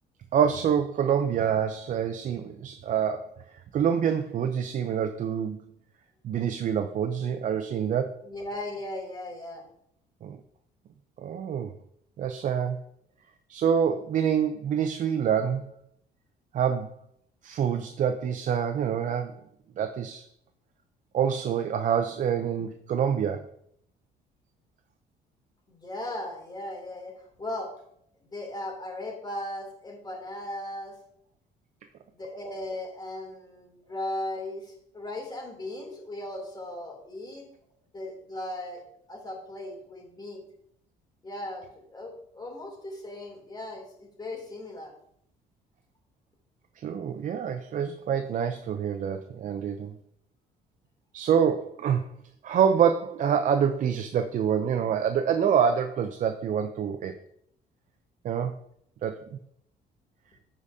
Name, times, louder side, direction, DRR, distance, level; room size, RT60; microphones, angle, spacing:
voice 1, 0.3-5.7 6.2-8.2 10.2-10.4 11.2-11.7 12.2-12.8 13.5-15.7 16.5-16.9 17.4-19.4 19.8-20.2 21.1-23.5 46.8-49.9 51.1-52.1 52.4-57.2 58.2-58.6 59.0-59.4, right 8 dB, 50° right, 7 dB, 0.6 m, -26 dB
voice 2, 8.2-9.7 25.7-27.7 28.2-31.0 32.1-37.4 37.9-38.8 39.1-40.4 41.2-44.9, left 1 dB, 25° left, 0 dB, 2.9 m, -37 dB
13.5 x 5.0 x 2.7 m, 0.70 s
cardioid pair, 110°, 17 cm